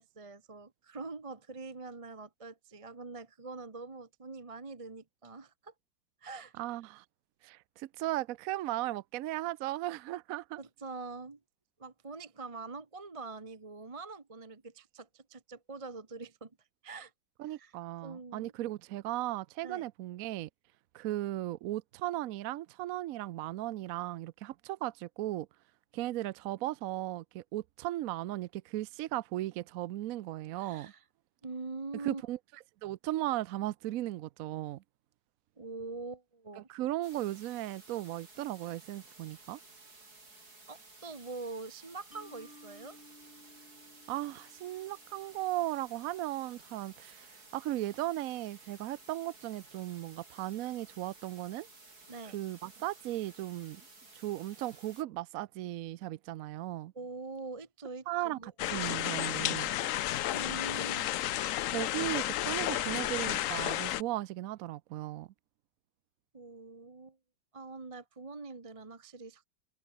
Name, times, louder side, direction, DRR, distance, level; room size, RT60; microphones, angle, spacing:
voice 1, 0.0-5.7 6.2-6.5 10.6-11.4 11.8-17.1 17.4-17.7 18.0-18.5 19.6-19.9 30.6-31.0 31.4-32.2 35.6-36.7 40.7-43.0 52.1-52.4 56.9-58.5 60.3-61.1 66.3-67.2 67.5-69.4, right 3 dB, 20° right, 1.0 m, -44 dB
voice 2, 6.6-7.0 7.4-10.6 17.4-20.5 20.9-25.5 25.9-30.9 32.0-32.4 32.8-34.8 36.7-39.6 44.1-51.7 52.3-53.8 54.1-56.9 58.1-59.7 61.7-65.3, right 15 dB, 75° right, 0.8 m, -36 dB
sound 1, 37.0-55.0, right 3 dB, 55° right, 5.4 m, -56 dB
Mallet percussion, 42.1-45.4, left 1 dB, 5° left, 3.1 m, -57 dB
sound 2, 58.6-64.0, left 13 dB, 85° left, 0.7 m, -32 dB
omnidirectional pair, 2.1 m